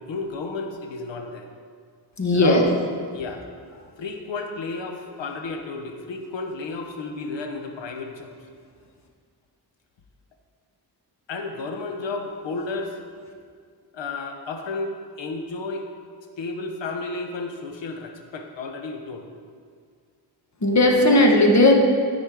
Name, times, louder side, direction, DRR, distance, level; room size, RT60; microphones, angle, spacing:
voice 1, 0.0-1.5 2.3-2.7 3.1-3.4 4.0-8.3 11.3-13.0 13.9-14.9 15.2-15.8 16.4-19.3, left 3 dB, 80° left, 4 dB, 1.1 m, -32 dB
voice 2, 2.2-2.6 20.6-21.7, left 1 dB, 40° left, 1 dB, 1.5 m, -16 dB
13.0 x 4.4 x 4.9 m, 2.1 s
cardioid pair, 75°, 43 cm